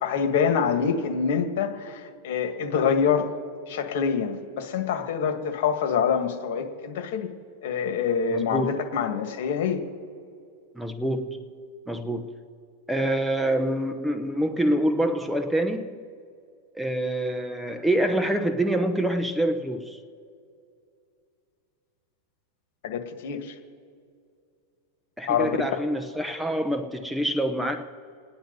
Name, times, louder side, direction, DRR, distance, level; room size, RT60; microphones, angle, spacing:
voice 1, 0.0-3.3 3.7-7.3 7.6-9.8 22.8-23.5 25.3-25.5, left 6 dB, 65° left, 1.9 m, -26 dB
voice 2, 8.3-8.7 10.7-11.5 11.9-12.4 12.9-16.0 16.7-20.0 25.2-27.9, right 1 dB, 5° right, 0.8 m, -26 dB
29.0 x 10.0 x 4.1 m
supercardioid pair, 140°, 0 cm